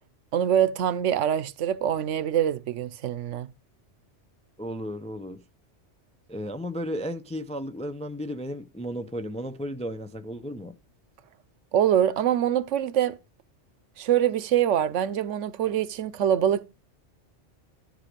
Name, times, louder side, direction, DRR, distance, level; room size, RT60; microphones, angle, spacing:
voice 1, 0.3-3.5 11.7-13.1 14.0-16.6, right 10 dB, 90° right, 1.0 m, -24 dB
voice 2, 4.6-5.4 6.3-10.8, equal, 10° left, 0.4 m, -34 dB
13.0 x 5.0 x 5.1 m
omnidirectional pair, 1.2 m